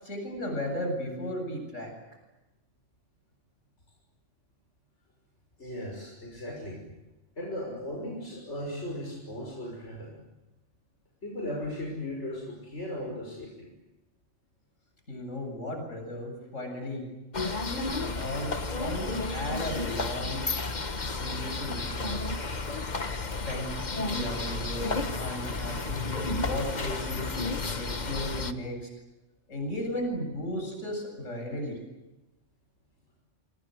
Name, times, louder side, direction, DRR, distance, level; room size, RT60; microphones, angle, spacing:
voice 1, 0.0-1.9 15.1-17.0 17.7-20.5 21.2-22.3 23.4-27.3 27.8-28.9 29.5-31.8, left 1 dB, 80° left, 3 dB, 8.4 m, -35 dB
voice 2, 5.6-6.9 7.4-10.2 11.2-13.7, left 1 dB, 65° left, -1 dB, 6.4 m, -37 dB
sound 1, 17.3-28.5, left 3 dB, 35° left, 1.4 m, -32 dB
28.5 x 25.5 x 8.0 m, 1.0 s
omnidirectional pair, 1.3 m